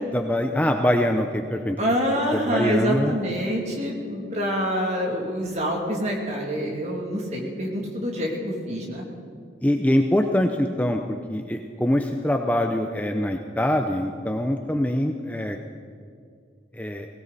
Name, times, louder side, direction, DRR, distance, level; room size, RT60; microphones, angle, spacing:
voice 1, 0.1-1.8 2.3-3.2 9.6-15.6 16.7-17.1, left 1 dB, 10° left, 4 dB, 0.6 m, -24 dB
voice 2, 1.8-8.4 8.7-9.0, equal, 35° right, -1 dB, 2.7 m, -26 dB
19.0 x 17.5 x 4.1 m, 2.3 s
head